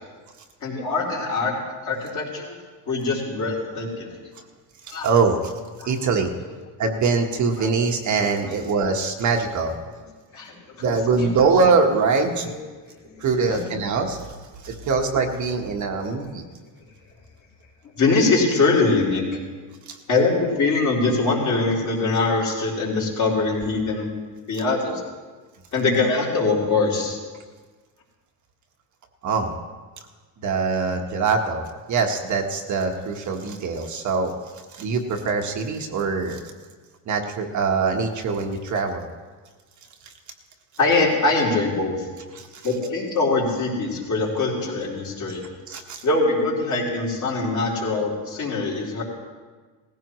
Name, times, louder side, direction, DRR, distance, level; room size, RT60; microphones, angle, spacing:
voice 1, 0.6-1.5 1.8-2.6 2.9-4.2 4.9-5.1 5.8-5.9 6.4-6.5 7.6-7.7 8.5-8.6 10.3-10.8 11.2-11.3 12.4-12.6 13.0-13.7 15.9-16.3 18.0-19.2 20.1-24.1 24.5-25.0 25.7-27.2 40.8-42.1 42.6-45.4 46.0-49.0, left 3 dB, 40° left, -4 dB, 3.9 m, -23 dB
voice 2, 4.9-5.5 5.8-6.3 6.8-9.7 10.8-12.5 13.2-14.2 14.6-16.4 19.9-20.0 29.2-29.5 30.4-34.3 34.7-36.4 37.1-39.1 42.3-42.5 45.7-46.0, right 4 dB, 40° right, 3 dB, 1.4 m, -23 dB
18.5 x 15.5 x 3.1 m, 1.4 s
cardioid pair, 125°, 45 cm